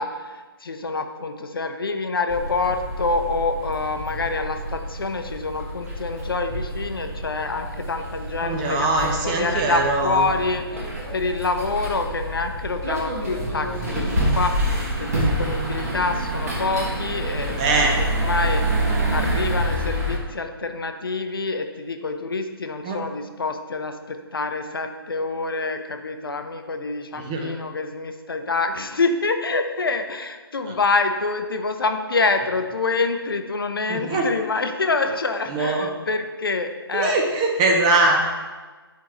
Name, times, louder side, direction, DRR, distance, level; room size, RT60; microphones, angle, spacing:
voice 1, 0.0-14.1 14.3-14.7 15.0-18.6 19.1-37.2, left 3 dB, 60° left, 6 dB, 0.6 m, -26 dB
sound 1, 2.3-20.2, right 1 dB, 40° right, 1.2 m, -27 dB
voice 2, 8.4-10.3 17.5-18.0 22.8-23.0 27.2-27.5 33.9-34.3 35.5-35.9 36.9-38.2, right 2 dB, 15° right, 1 dB, 0.5 m, -22 dB
8.1 x 4.6 x 3.0 m, 1.3 s
figure-of-eight pair, 140°, 13 cm